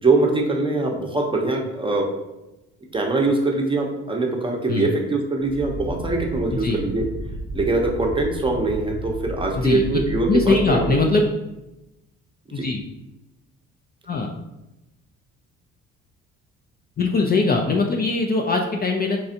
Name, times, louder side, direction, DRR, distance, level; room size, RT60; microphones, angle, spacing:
voice 1, 0.0-2.1 2.9-7.0 7.5-11.0 12.6-12.7, right 2 dB, 15° right, 1 dB, 0.7 m, -22 dB
sound 1, 5.4-11.2, right 2 dB, 15° left, 0.8 m, -33 dB
voice 2, 10.3-11.3 12.5-12.8 14.1-14.3 17.0-19.2, left 3 dB, 30° left, 1 dB, 0.4 m, -21 dB
4.2 x 2.3 x 2.7 m, 0.97 s
supercardioid pair, 85°, 31 cm